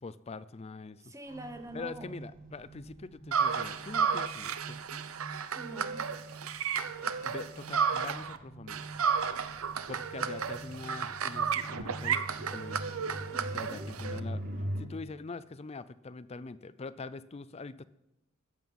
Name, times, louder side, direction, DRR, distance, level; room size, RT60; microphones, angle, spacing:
voice 1, 0.0-1.1 1.7-5.0 7.2-8.9 9.9-12.8 13.5-14.4 14.8-17.8, left 3 dB, 30° left, 16 dB, 0.5 m, -43 dB
voice 2, 1.0-2.1 5.5-6.0 13.3-13.9, right 1 dB, 15° right, 6 dB, 0.9 m, -45 dB
sound 1, 1.3-14.8, right 1 dB, 60° right, 4.7 m, -44 dB
sound 2, 3.3-8.4 8.7-14.2, right 6 dB, 85° right, 0.8 m, -32 dB
14.0 x 9.1 x 5.4 m, 0.87 s
head